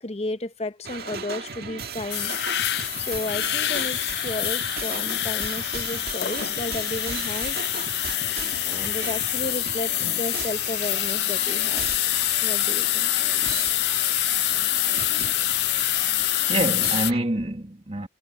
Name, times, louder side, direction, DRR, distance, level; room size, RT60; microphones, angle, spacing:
voice 1, 0.0-2.4 3.0-7.6 8.6-11.9 12.4-13.1, left 2 dB, 35° left, 0.8 m, -33 dB
sound 1, 0.8-17.2, right 5 dB, 60° right, 2.0 m, -36 dB
sound 2, 2.1-17.1, left 16 dB, 65° left, 0.4 m, -26 dB
voice 2, 16.1-18.1, right 1 dB, 35° right, 2.1 m, -27 dB
head